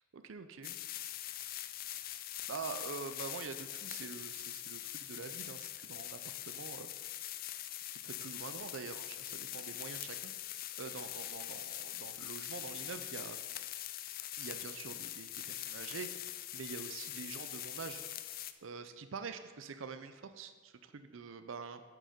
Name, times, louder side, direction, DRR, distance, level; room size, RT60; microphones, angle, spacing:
voice 1, 0.1-0.8 2.0-2.2 2.5-6.9 7.9-13.4 14.4-18.0 18.6-21.8, right 5 dB, 90° right, 10 dB, 0.5 m, -46 dB
sound 1, 0.6-18.5, left 13 dB, 50° left, 0.4 m, -43 dB
8.5 x 6.5 x 5.0 m, 1.4 s
head